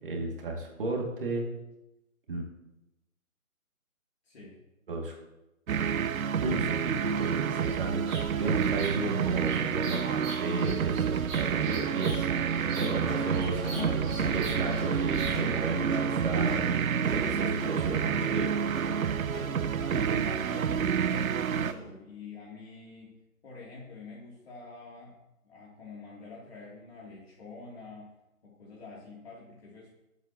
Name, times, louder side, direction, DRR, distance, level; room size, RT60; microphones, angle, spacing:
voice 1, 0.0-1.4 2.3-2.5 4.9-5.2 6.4-16.6 17.1-18.7, right 3 dB, 40° right, 1 dB, 2.3 m, -33 dB
voice 2, 4.2-4.6 19.8-23.2 23.4-25.2 25.4-28.1 28.4-29.9, left 3 dB, 45° left, -5 dB, 2.8 m, -46 dB
sound 1, 5.7-21.7, right 7 dB, 75° right, 0.5 m, -29 dB
Bird vocalization bird call bird song, 7.1-15.6, right 2 dB, 20° right, 1.9 m, -45 dB
sound 2, 12.5-21.9, equal, ahead, 4.3 m, -39 dB
20.5 x 8.2 x 2.9 m, 0.94 s
figure-of-eight pair, 150°, 42 cm